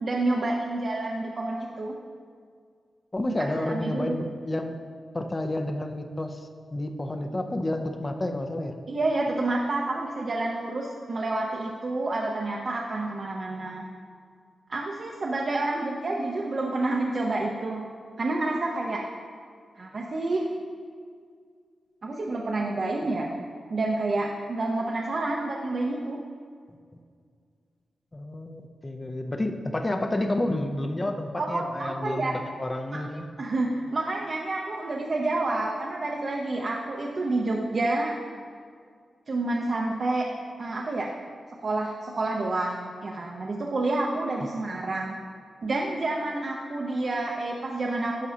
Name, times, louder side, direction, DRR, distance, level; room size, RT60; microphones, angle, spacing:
voice 1, 0.0-1.9 3.4-4.2 8.9-13.8 14.7-17.8 18.2-19.0 19.8-20.4 22.0-23.3 23.7-26.2 31.4-32.3 32.9-33.0 33.4-38.1 39.3-40.3 40.6-41.1 41.6-45.2 45.6-48.3, right 2 dB, 50° right, -1 dB, 0.6 m, -29 dB
voice 2, 3.1-4.8 5.1-8.7 23.3-23.4 28.1-33.3, left 1 dB, 25° left, 5 dB, 0.5 m, -30 dB
11.5 x 6.0 x 2.8 m, 2.1 s
wide cardioid pair, 115°, 0 cm